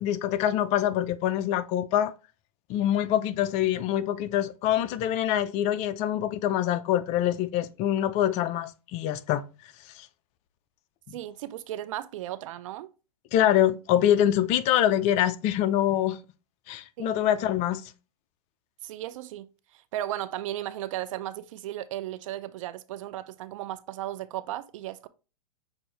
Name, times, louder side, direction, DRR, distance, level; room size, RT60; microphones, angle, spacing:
voice 1, 0.0-2.1 2.7-9.4 9.9-10.1 13.3-16.2 16.7-17.8, left 11 dB, 35° left, 0.4 m, -25 dB
voice 2, 11.1-12.9 17.0-17.3 18.8-19.5 19.7-25.1, right 13 dB, 60° right, 0.4 m, -35 dB
6.3 x 2.6 x 3.1 m
hypercardioid pair, 120°, 19 cm